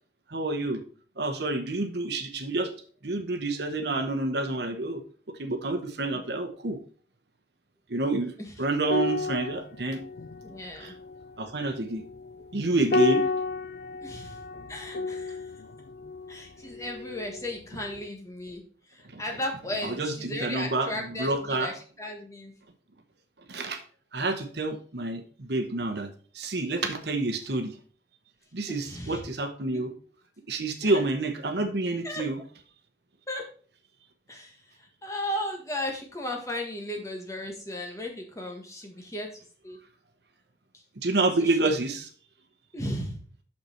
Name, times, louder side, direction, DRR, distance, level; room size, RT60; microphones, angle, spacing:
voice 1, 0.3-0.8 1.2-2.7 3.0-5.0 5.4-6.8 7.9-8.3 8.6-10.0 10.8-10.9 11.4-12.0 12.5-13.2 19.0-19.2 19.8-21.7 23.5-23.8 24.1-27.8 28.5-29.9 30.5-32.4 41.0-42.1, right 2 dB, 65° right, 7 dB, 1.0 m, -28 dB
sound 1, 8.8-17.6 17.9-18.1, left 3 dB, 60° left, 0.4 m, -32 dB
voice 2, 10.4-10.9 14.0-14.4 14.7-15.5 16.3-18.6 18.9-22.5 28.7-29.3 29.7-29.8 30.8-31.0 32.0-32.2 33.3-33.5 34.3-39.8 41.4-41.7 42.7-43.2, left 1 dB, 15° left, 2 dB, 1.4 m, -36 dB
6.4 x 5.8 x 4.4 m, 0.42 s
head